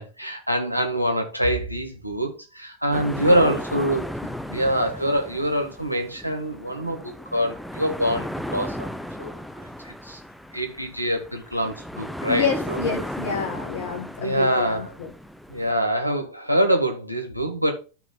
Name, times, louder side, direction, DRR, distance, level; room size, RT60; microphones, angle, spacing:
voice 1, 0.0-4.1 4.5-8.9 9.2-9.4 9.8-10.2 10.5-12.8 14.2-14.9 15.5-17.7, equal, 90° right, 1.5 m, -25 dB
sound 1, 2.9-15.7, equal, ahead, 0.6 m, -35 dB
voice 2, 12.3-15.1, left 5 dB, 55° left, 1.6 m, -28 dB
13.0 x 5.1 x 2.3 m
figure-of-eight pair, 90°, 0 cm